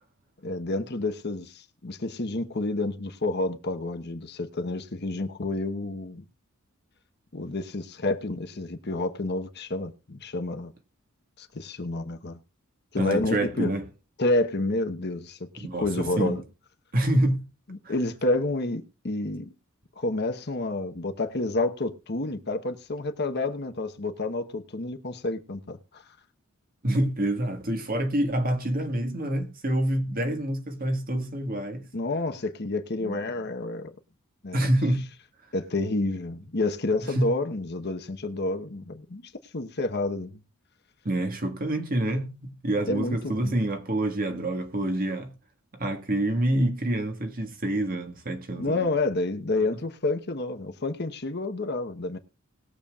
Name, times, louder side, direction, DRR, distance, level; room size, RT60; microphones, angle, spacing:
voice 1, 0.4-6.2 7.3-10.7 11.4-12.4 12.9-13.7 14.2-16.4 17.7-19.5 20.0-26.0 31.9-33.9 34.4-34.7 35.5-40.4 42.9-43.6 48.6-52.2, left 2 dB, 50° left, 1.1 m, -29 dB
voice 2, 13.0-13.9 15.6-16.3 16.9-17.4 26.8-31.8 33.0-33.1 34.5-35.1 37.0-37.3 41.0-45.3 45.8-48.9, right 1 dB, 40° right, 1.6 m, -27 dB
20.5 x 7.1 x 2.4 m
head